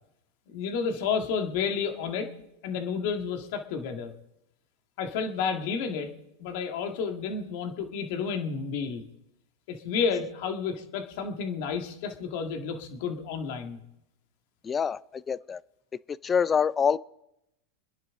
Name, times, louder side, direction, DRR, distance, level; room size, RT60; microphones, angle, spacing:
voice 1, 0.5-2.3 2.6-4.1 5.0-6.1 6.4-9.0 9.7-13.8, left 6 dB, 60° left, 1.9 m, -31 dB
voice 2, 14.6-15.6 16.1-17.0, left 6 dB, 20° left, 0.4 m, -26 dB
25.5 x 10.5 x 3.8 m
hypercardioid pair, 115°, 0 cm